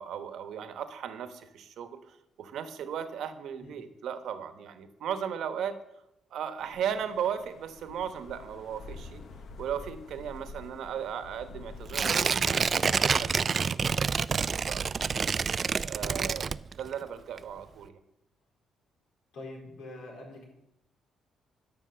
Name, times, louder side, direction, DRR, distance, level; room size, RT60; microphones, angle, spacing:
voice 1, 0.0-5.8 6.3-9.2 9.6-14.4 14.7-14.9 15.8-17.9, right 8 dB, 75° right, 9 dB, 1.1 m, -36 dB
sound 1, 6.6-13.4, left 3 dB, 60° left, 1.2 m, -47 dB
Tearing, 11.9-17.0 17.4-17.5, right 5 dB, 40° right, 0.3 m, -27 dB
voice 2, 19.3-20.4, left 2 dB, 75° left, -1 dB, 4.4 m, -44 dB
12.0 x 6.0 x 6.8 m, 0.85 s
cardioid pair, 90°, 0 cm